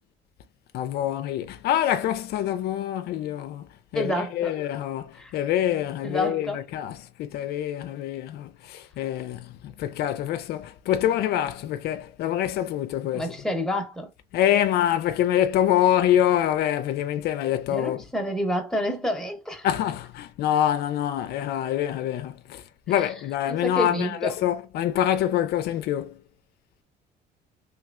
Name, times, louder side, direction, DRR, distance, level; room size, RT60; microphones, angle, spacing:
voice 1, 0.7-3.7 3.9-13.3 14.3-18.0 19.6-26.2, left 11 dB, 70° left, 0.4 m, -25 dB
voice 2, 3.9-4.6 5.1-5.4 6.0-6.6 13.1-14.1 17.7-19.7 22.9-23.1 23.5-24.3, equal, 5° left, 1.0 m, -29 dB
3.2 x 3.2 x 2.4 m
cardioid pair, 110°, 17 cm